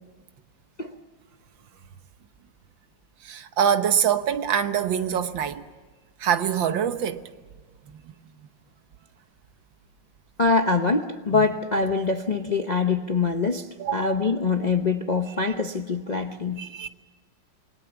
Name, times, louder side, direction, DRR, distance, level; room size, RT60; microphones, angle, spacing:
voice 1, 3.2-5.7 6.2-7.2 11.3-11.4 13.8-14.1 16.6-16.9, right 8 dB, 80° right, 1.8 m, -24 dB
voice 2, 10.4-16.6, left 4 dB, 40° left, 0.6 m, -24 dB
28.0 x 20.5 x 7.1 m
omnidirectional pair, 2.0 m